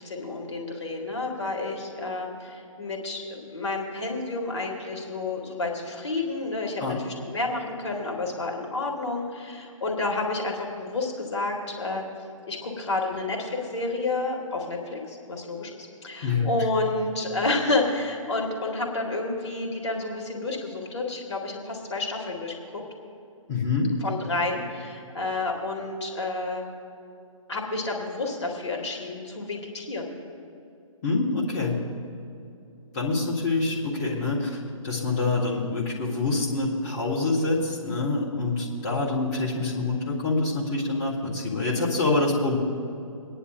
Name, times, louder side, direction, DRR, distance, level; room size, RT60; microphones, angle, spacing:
voice 1, 0.0-12.0 12.5-15.7 16.0-22.8 24.0-26.6 27.5-30.1, left 2 dB, 50° left, 0 dB, 2.0 m, -30 dB
voice 2, 23.5-23.9 31.0-31.8 32.9-34.5 34.8-42.6, left 3 dB, 30° left, -6 dB, 1.8 m, -26 dB
28.0 x 10.0 x 2.5 m, 2.6 s
figure-of-eight pair, 135°, 18 cm